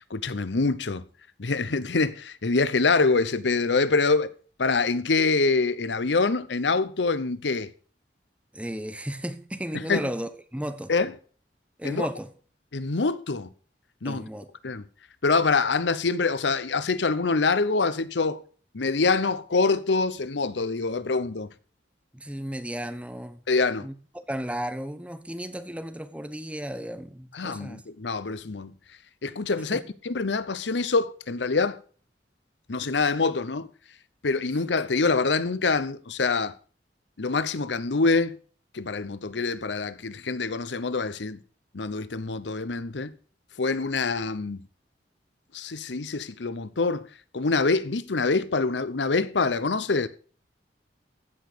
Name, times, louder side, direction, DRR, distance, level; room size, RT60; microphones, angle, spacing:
voice 1, 0.1-1.0 1.4-4.3 4.6-7.7 9.7-10.1 10.9-11.1 11.8-12.1 12.7-13.5 14.0-14.2 14.6-14.8 15.2-18.4 18.7-21.5 23.5-23.9 27.3-28.7 29.2-31.8 32.7-33.7 34.2-36.5 37.2-38.4 38.7-41.4 41.7-43.1 43.6-44.6 45.5-47.1 47.3-50.1, left 4 dB, 85° left, 0.8 m, -25 dB
voice 2, 8.5-10.9 11.8-12.3 14.0-14.5 22.1-23.4 23.8-27.8 29.7-29.8, equal, 5° right, 1.0 m, -34 dB
15.5 x 6.2 x 6.7 m
head